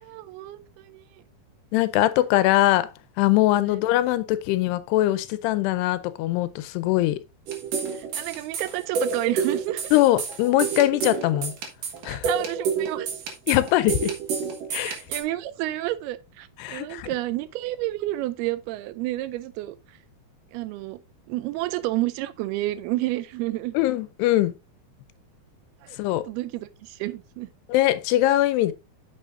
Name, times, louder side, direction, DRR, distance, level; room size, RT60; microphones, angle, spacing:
voice 1, 0.0-1.0 3.6-3.8 7.9-9.9 12.1-13.1 14.8-19.8 20.5-21.0 21.3-23.7 25.8-27.5, right 17 dB, 80° right, 2.4 m, -30 dB
voice 2, 1.7-2.9 3.2-7.2 9.9-11.5 12.0-12.3 13.5-14.1 14.7-15.0 16.6-17.1 23.7-24.5 26.0-26.2 27.7-28.7, left 15 dB, 85° left, 2.7 m, -22 dB
sound 1, 7.5-15.2, right 6 dB, 60° right, 3.0 m, -29 dB
9.1 x 6.8 x 2.6 m
omnidirectional pair, 4.7 m